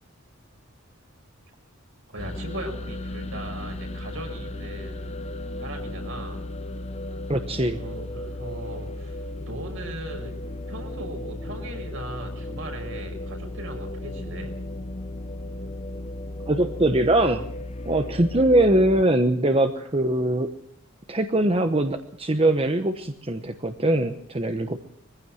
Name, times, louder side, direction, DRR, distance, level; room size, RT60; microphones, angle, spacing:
voice 1, 2.1-5.2 5.6-6.4 7.8-9.2 9.5-10.3 10.7-14.5, right 1 dB, 65° right, 3 dB, 6.3 m, -38 dB
sound 1, 2.2-19.0, left 1 dB, 30° left, 0.8 m, -35 dB
voice 2, 7.3-7.8 16.5-17.5 17.9-20.5 21.1-24.8, right 1 dB, 25° right, 7 dB, 1.0 m, -22 dB
23.0 x 15.5 x 7.6 m, 0.67 s
head